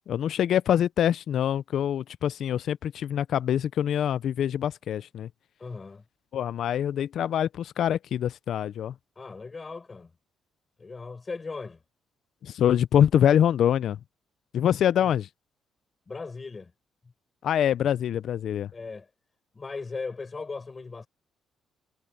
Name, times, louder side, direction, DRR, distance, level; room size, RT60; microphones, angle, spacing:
voice 1, 0.0-5.3 6.3-8.9 12.4-14.0 14.5-15.3 17.4-18.7, left 10 dB, 70° left, 0.5 m, -25 dB
voice 2, 5.6-6.0 9.1-10.1 10.8-11.8 14.8-15.1 16.1-16.7 18.7-19.1 19.5-21.1, left 4 dB, 30° left, 4.9 m, -38 dB
cardioid pair, 90°, 0 cm